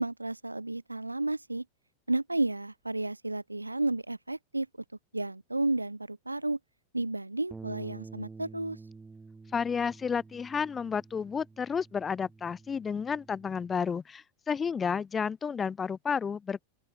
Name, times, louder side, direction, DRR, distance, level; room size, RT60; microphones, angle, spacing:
voice 1, 0.0-1.6 2.1-4.7 5.1-6.6 6.9-8.8, right 2 dB, 85° right, 2.3 m, -32 dB
Bass guitar, 7.5-13.8, right 3 dB, 10° right, 1.9 m, -49 dB
voice 2, 9.5-16.6, left 6 dB, 20° left, 1.8 m, -31 dB
open air
figure-of-eight pair, 90°, 0 cm